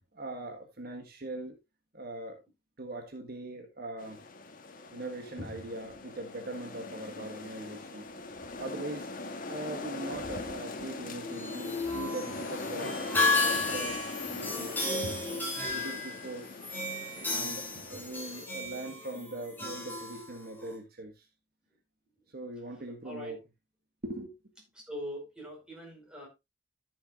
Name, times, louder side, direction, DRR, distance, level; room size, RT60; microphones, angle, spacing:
voice 1, 0.1-1.6 1.9-2.4 2.8-4.2 4.9-8.1 8.6-9.1 9.5-13.0 13.4-14.0 14.3-16.5 17.2-21.3 22.3-23.4 24.0-24.3, right 2 dB, 55° right, 1.7 m, -41 dB
sound 1, 4.0-18.4, left 3 dB, 50° left, 1.4 m, -41 dB
voice 2, 5.2-5.5 15.0-15.2 23.0-23.4 24.8-26.3, equal, 5° right, 5.0 m, -41 dB
sound 2, 11.2-20.8, left 3 dB, 10° left, 3.1 m, -33 dB
13.5 x 7.2 x 2.5 m
head